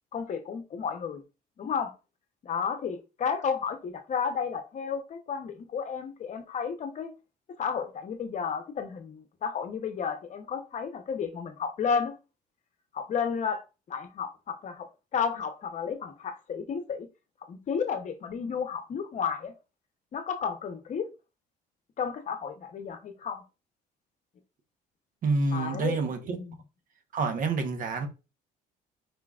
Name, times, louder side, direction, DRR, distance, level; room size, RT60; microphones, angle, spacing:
voice 1, 0.1-1.2 1.6-1.9 2.4-7.1 7.6-12.1 12.9-14.9 15.1-17.1 17.5-19.5 20.1-21.1 22.0-23.4 25.5-26.0 26.3-26.6, left 6 dB, 45° left, 0.8 m, -32 dB
voice 2, 25.2-26.4 27.1-28.1, right 3 dB, 55° right, 1.0 m, -28 dB
5.1 x 3.7 x 2.4 m
cardioid pair, 110°, 17 cm